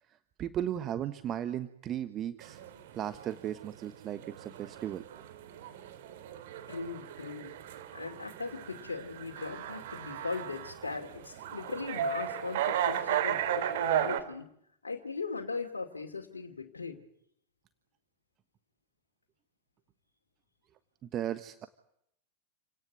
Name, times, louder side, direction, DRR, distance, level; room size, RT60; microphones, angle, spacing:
voice 1, 0.4-2.6 2.9-5.0 21.0-21.7, right 10 dB, 30° right, 11 dB, 1.3 m, -36 dB
sound 1, 2.4-14.2, right 9 dB, 55° right, 2.9 m, -35 dB
voice 2, 6.7-7.6 7.9-14.5 14.8-17.0, left 4 dB, 75° left, 1 dB, 2.7 m, -39 dB
29.5 x 18.0 x 9.5 m, 0.72 s
figure-of-eight pair, 90°, 0 cm